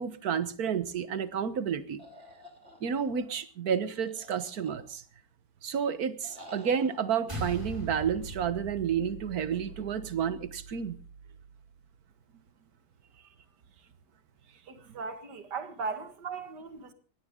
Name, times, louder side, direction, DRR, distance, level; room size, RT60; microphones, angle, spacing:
voice 1, 0.0-2.0 2.8-5.0 5.6-11.0, right 7 dB, 65° right, 1.7 m, -30 dB
sound 1, 2.0-3.3 4.0-5.2 6.2-7.0, equal, 40° right, 3.6 m, -51 dB
sound 2, 7.3-11.9, right 2 dB, 15° right, 6.1 m, -42 dB
voice 2, 14.7-16.9, right 4 dB, 80° right, 2.4 m, -38 dB
20.5 x 16.5 x 3.8 m
omnidirectional pair, 1.8 m